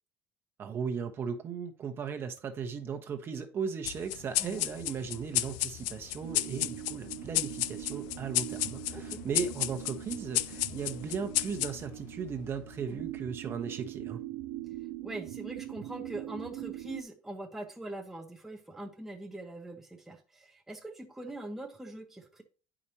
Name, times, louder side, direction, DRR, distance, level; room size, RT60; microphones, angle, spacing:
voice 1, 0.6-14.2, right 6 dB, 35° right, 1.0 m, -37 dB
sound 1, 3.9-12.7, left 16 dB, 75° left, 0.4 m, -34 dB
sound 2, 6.2-17.0, right 15 dB, 75° right, 0.5 m, -42 dB
voice 2, 8.9-9.2 12.7-13.0 15.0-22.4, right 1 dB, 5° right, 0.7 m, -43 dB
8.7 x 4.9 x 2.8 m
supercardioid pair, 120°, 7 cm